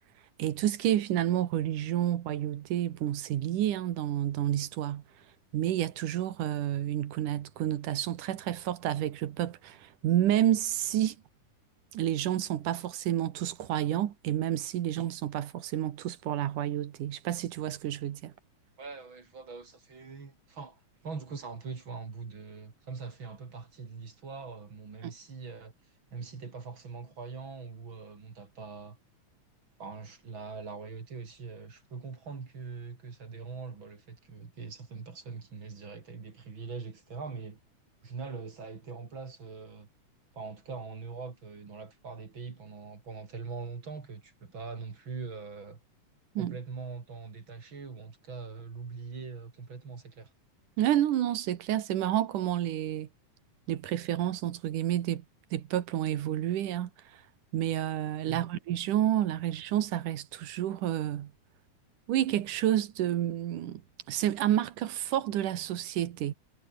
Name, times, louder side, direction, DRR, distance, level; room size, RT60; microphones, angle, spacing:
voice 1, 0.4-5.0 5.5-11.2 11.9-18.3 25.0-25.1 46.4-46.6 50.8-53.1 53.7-55.2 55.5-56.9 57.5-61.3 62.1-63.8 64.1-66.3, right 12 dB, 85° right, 3.0 m, -29 dB
voice 2, 18.8-25.7 26.1-29.0 29.8-37.6 38.0-39.9 40.3-45.8 46.4-50.3 58.3-58.5, right 4 dB, 40° right, 3.5 m, -42 dB
omnidirectional pair, 3.6 m